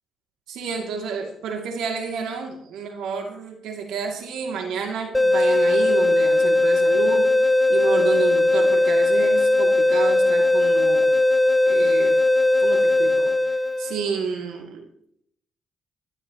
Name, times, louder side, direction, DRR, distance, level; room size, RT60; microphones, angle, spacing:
voice 1, 0.5-11.1 11.7-12.2 12.6-13.3 13.8-14.9, right 5 dB, 85° right, 3 dB, 2.6 m, -30 dB
sound 1, 5.1-14.1, left 2 dB, 10° left, 0.6 m, -19 dB
19.5 x 11.5 x 3.0 m, 0.70 s
cardioid pair, 90°, 0 cm